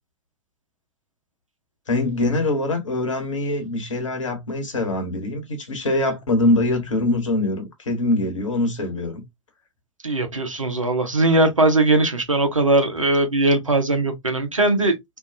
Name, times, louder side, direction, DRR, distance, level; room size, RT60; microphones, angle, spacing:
voice 1, 1.9-9.2, left 2 dB, 75° left, 1.1 m, -23 dB
voice 2, 10.0-15.2, right 2 dB, 90° right, 0.7 m, -20 dB
2.6 x 2.3 x 2.4 m
figure-of-eight pair, 95°, 16 cm